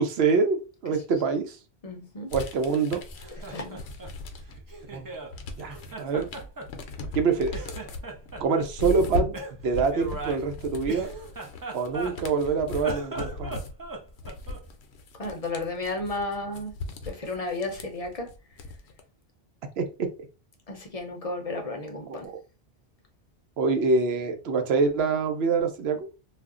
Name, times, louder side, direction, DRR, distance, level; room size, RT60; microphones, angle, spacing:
voice 1, 0.0-1.6 2.3-3.0 4.9-5.1 5.6-6.3 7.1-7.5 8.4-9.4 9.6-11.1 11.7-13.6 19.8-20.1 22.1-22.3 23.6-26.1, right 4 dB, 75° right, 0.9 m, -25 dB
voice 2, 1.8-2.3 3.5-3.8 15.2-16.7 17.0-18.3 20.7-22.3, left 2 dB, 40° left, 0.6 m, -33 dB
sound 1, 2.3-4.7 5.1-19.0, left 3 dB, 80° left, 0.8 m, -38 dB
Laughter, 3.0-5.3 5.7-7.2 7.5-8.7 9.3-12.4 12.7-14.7, right 2 dB, 30° right, 0.4 m, -38 dB
2.4 x 2.1 x 3.6 m
omnidirectional pair, 1.1 m